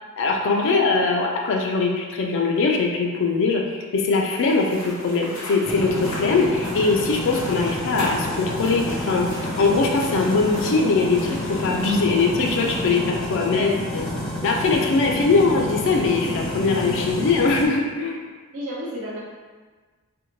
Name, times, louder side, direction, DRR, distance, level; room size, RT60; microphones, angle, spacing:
voice 1, 0.2-9.3 9.6-14.0 14.4-18.2, left 4 dB, 60° left, 1 dB, 0.3 m, -21 dB
sound 1, 4.3-13.0, left 1 dB, 90° left, 0.8 m, -38 dB
sound 2, 5.6-17.7, equal, ahead, 0.5 m, -29 dB
voice 2, 18.5-19.2, equal, 60° right, -7 dB, 0.5 m, -31 dB
2.6 x 2.1 x 3.0 m, 1.4 s
head